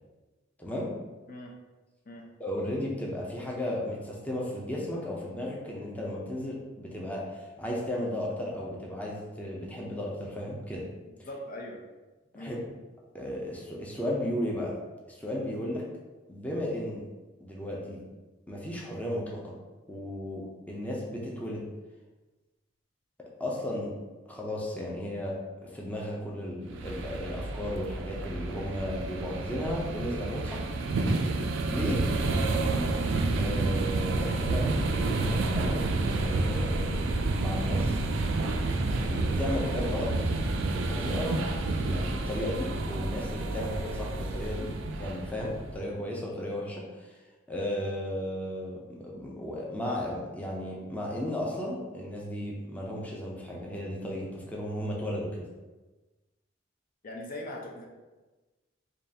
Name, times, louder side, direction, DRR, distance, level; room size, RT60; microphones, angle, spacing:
voice 1, 0.6-0.9 2.4-10.9 12.3-12.6 13.1-14.8 15.1-15.9 16.3-17.0 17.4-18.0 18.5-19.5 19.9-21.7 23.4-23.9 24.3-30.7 31.7-32.0 33.4-35.9 36.2-37.1 37.4-38.0 39.0-40.1 40.6-44.7 45.0-47.2 47.5-55.4, left 1 dB, 10° left, -4 dB, 0.5 m, -34 dB
voice 2, 11.0-11.8 12.3-12.5 32.1-32.3 57.0-57.9, left 1 dB, 45° left, 0 dB, 0.6 m, -41 dB
sound 1, 26.7-45.8, right 2 dB, 75° right, 0.4 m, -29 dB
5.2 x 2.4 x 2.8 m, 1.2 s
head